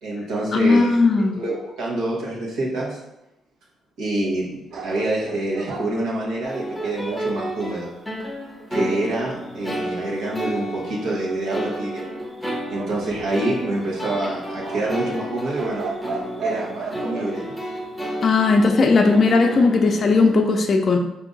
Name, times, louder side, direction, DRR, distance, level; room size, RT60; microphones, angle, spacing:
voice 1, 0.0-3.0 4.0-4.5 4.7-7.9 8.7-12.0 12.7-15.8 16.4-17.4, right 2 dB, 85° right, -4 dB, 1.1 m, -26 dB
voice 2, 0.5-1.4 18.2-21.0, left 3 dB, 45° left, 3 dB, 0.4 m, -17 dB
sound 1, 4.7-7.3 12.7-13.6 14.6-17.4, right 4 dB, 65° right, 0.6 m, -34 dB
sound 2, 6.4-20.4, equal, ahead, 0.8 m, -32 dB
3.7 x 2.6 x 3.9 m, 0.89 s
cardioid pair, 90°, 0 cm